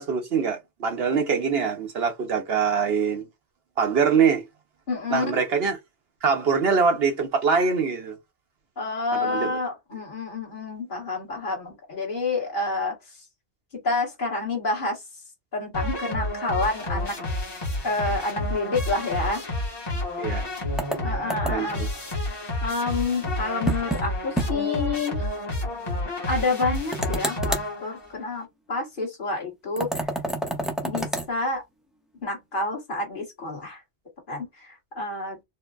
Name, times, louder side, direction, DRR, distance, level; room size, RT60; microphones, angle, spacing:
voice 1, 0.0-3.3 3.8-4.4 5.1-5.8 6.2-8.2 9.2-9.6 20.2-20.4 21.5-21.9, right 5 dB, 60° right, 0.9 m, -23 dB
voice 2, 4.9-5.4 8.8-13.0 13.7-15.0 15.5-17.2 17.8-19.4 21.0-21.9 22.6-25.3 26.3-30.1 30.8-31.6 32.2-33.8 34.3-35.4, left 3 dB, 45° left, 1.5 m, -28 dB
sound 1, 15.7-28.1, left 1 dB, 20° left, 1.0 m, -30 dB
sound 2, 20.8-21.8 23.7-24.0 24.4-24.5 24.8-24.9 26.9-27.7 29.8-31.3, right 1 dB, ahead, 0.4 m, -29 dB
4.4 x 2.1 x 2.4 m
omnidirectional pair, 1.2 m